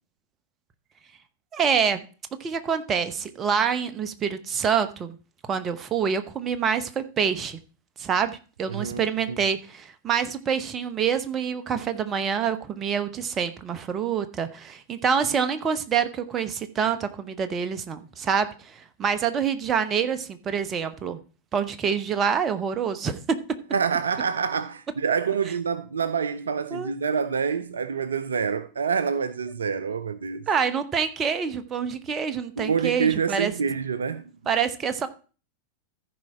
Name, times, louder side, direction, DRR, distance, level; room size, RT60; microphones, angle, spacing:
voice 1, 1.5-2.0 2.4-5.2 5.5-7.6 8.0-21.2 21.5-23.2 26.7-26.9 30.5-33.5 34.5-35.1, right 7 dB, 25° right, 1.0 m, -26 dB
voice 2, 8.7-9.0 9.3-9.4 23.7-30.5 32.6-34.3, right 6 dB, 70° right, 0.5 m, -27 dB
14.5 x 4.9 x 4.3 m
figure-of-eight pair, 90°, 0 cm